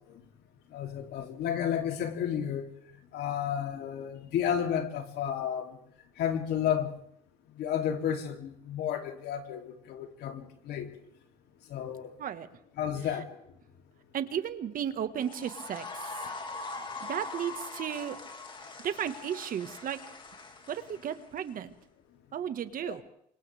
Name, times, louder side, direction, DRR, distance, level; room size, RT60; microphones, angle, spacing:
voice 1, 0.7-2.7 3.1-5.7 6.2-6.9 7.6-10.9 11.7-12.1 12.8-13.3 22.8-22.9, left 9 dB, 75° left, 4 dB, 3.2 m, -32 dB
voice 2, 14.1-15.9 16.2-16.3 17.1-18.2 18.8-20.0 20.7-21.7 22.3-23.0, right 9 dB, 55° right, 10 dB, 1.7 m, -34 dB
sound 1, 15.2-21.5, left 3 dB, 30° left, 2.6 m, -42 dB
28.5 x 25.5 x 3.6 m, 0.70 s
cardioid pair, 110°, 17 cm